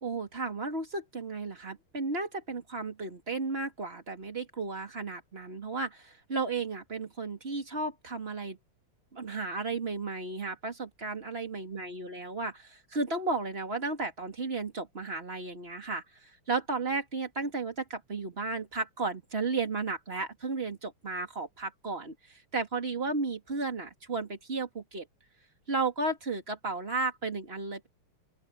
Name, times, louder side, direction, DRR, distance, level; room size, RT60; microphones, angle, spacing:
voice 1, 0.0-8.6 9.1-25.1 25.7-27.9, right 3 dB, 25° right, 2.9 m, -34 dB
open air
omnidirectional pair, 2.4 m